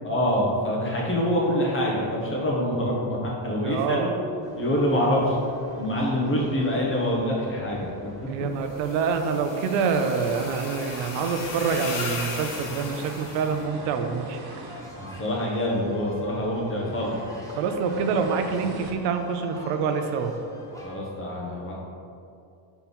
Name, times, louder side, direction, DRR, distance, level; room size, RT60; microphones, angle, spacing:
voice 1, 0.0-4.1 4.6-5.4 5.8-8.1 15.0-17.2 20.8-21.8, equal, 25° left, -3 dB, 1.3 m, -25 dB
voice 2, 3.6-4.2 8.3-14.4 17.6-20.3, right 5 dB, 85° right, 6 dB, 0.7 m, -26 dB
sound 1, 4.4-21.0, left 1 dB, 5° left, 0.9 m, -46 dB
sound 2, 7.8-18.9, right 2 dB, 45° right, 1.0 m, -46 dB
sound 3, 8.7-13.6, left 3 dB, 40° left, 1.0 m, -36 dB
4.5 x 4.1 x 5.3 m, 2.5 s
cardioid pair, 135°, 49 cm